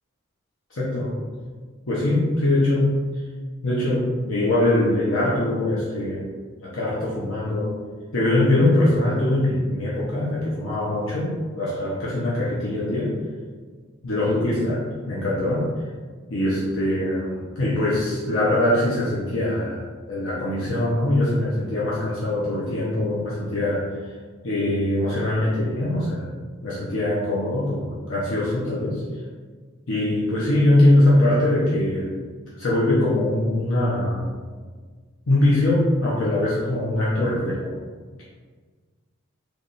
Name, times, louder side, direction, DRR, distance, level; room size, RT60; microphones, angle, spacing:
voice 1, 0.7-1.2 1.9-3.0 3.6-6.3 6.6-7.8 8.1-13.1 14.0-14.8 15.1-15.7 16.3-23.9 24.4-26.3 26.6-29.0 29.9-32.2 32.6-34.3 35.3-37.7, left 1 dB, 80° left, -8 dB, 0.9 m, -22 dB
3.4 x 3.2 x 4.1 m, 1.5 s
head